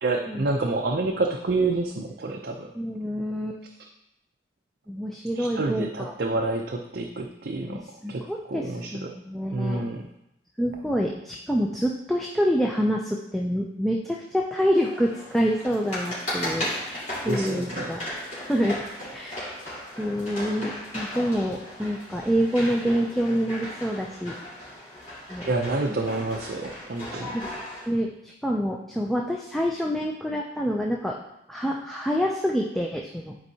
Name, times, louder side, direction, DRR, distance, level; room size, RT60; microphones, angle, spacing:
voice 1, 0.0-2.7 5.4-9.1 9.5-10.0 17.2-17.9 25.4-27.4, right 3 dB, 55° right, 2 dB, 0.5 m, -28 dB
voice 2, 2.7-3.6 4.9-6.1 7.7-9.9 10.6-18.0 18.4-18.8 19.1-19.5 20.0-24.3 25.3-25.5 27.3-27.5 27.9-31.2 31.5-33.4, equal, ahead, -1 dB, 0.4 m, -27 dB
sound 1, 14.7-27.8, left 1 dB, 40° left, 2.7 m, -36 dB
11.0 x 4.5 x 2.8 m, 0.86 s
head